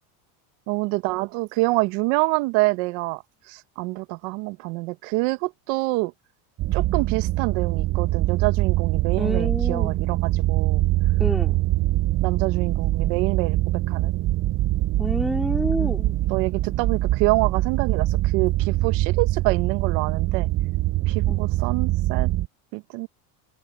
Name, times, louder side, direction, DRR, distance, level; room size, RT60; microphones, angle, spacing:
voice 1, 0.7-6.1 6.7-10.8 12.2-14.1 15.8-16.0 16.3-20.5 21.1-22.3 22.7-23.1, right 24 dB, 60° right, 1.6 m, -26 dB
sound 1, 6.6-22.5, right 16 dB, 30° right, 0.5 m, -23 dB
voice 2, 9.2-9.9 11.2-11.6 15.0-16.2 21.2-21.4, equal, ahead, 2.9 m, -28 dB
supercardioid pair, 135°, 49 cm